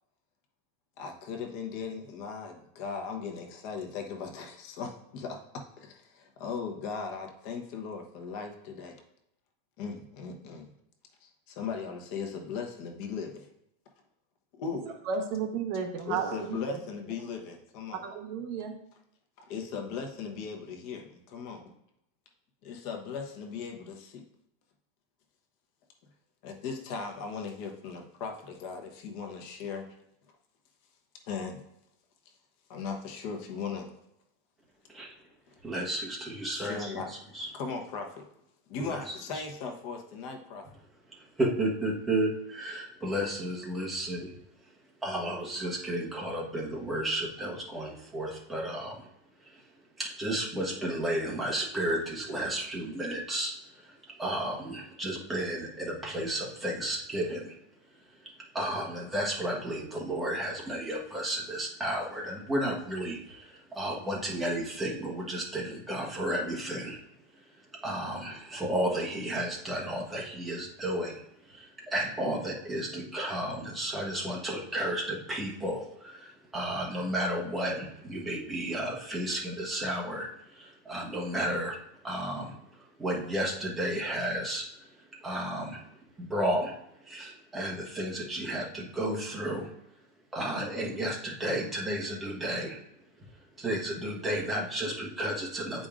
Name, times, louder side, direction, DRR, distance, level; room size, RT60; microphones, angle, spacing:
voice 1, 1.0-9.0 9.8-10.7 11.2-13.5 14.6-14.9 16.1-18.1 19.4-21.7 22.6-24.2 26.4-29.9 31.3-31.6 32.7-33.9 36.5-37.1 37.5-38.3 38.7-40.7, left 5 dB, 45° left, 0.9 m, -38 dB
voice 2, 15.1-16.6 18.0-18.7, right 6 dB, 45° right, 0.9 m, -33 dB
voice 3, 35.6-36.9 37.3-37.5 38.8-39.1 41.4-44.3 45.0-49.0 50.0-53.5 54.2-57.5 58.5-67.0 67.8-71.2 71.5-71.6 71.9-80.3 80.6-81.8 82.0-82.5 83.0-84.7 85.2-85.8 86.2-86.7 87.1-89.7 90.3-92.8 93.6-95.9, right 1 dB, 10° right, 1.2 m, -32 dB
8.5 x 5.1 x 2.5 m
supercardioid pair, 160°, 0 cm